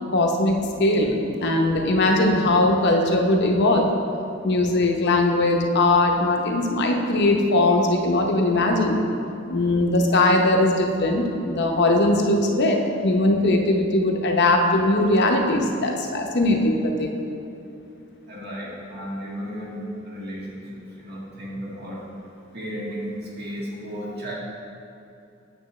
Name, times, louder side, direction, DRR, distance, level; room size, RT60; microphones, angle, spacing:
voice 1, 0.1-3.9 4.4-9.0 9.5-17.1, left 2 dB, 60° left, 2 dB, 0.7 m, -20 dB
voice 2, 18.3-22.0 22.5-24.3, equal, 55° right, -5 dB, 1.8 m, -34 dB
8.9 x 6.6 x 3.1 m, 2.8 s
head